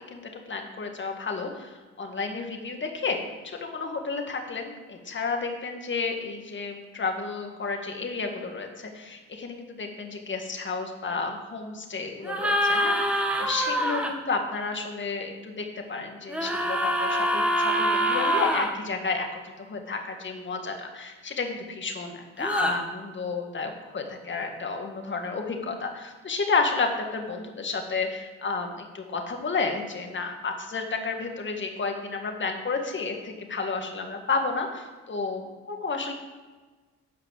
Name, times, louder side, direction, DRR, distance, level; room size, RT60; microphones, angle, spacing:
voice 1, 0.0-36.1, left 4 dB, 40° left, 4 dB, 1.9 m, -31 dB
sound 1, 12.2-14.1 16.3-18.7 22.4-22.7, equal, 5° right, 1.5 m, -25 dB
10.5 x 5.8 x 7.7 m, 1.3 s
cardioid pair, 90°, 30 cm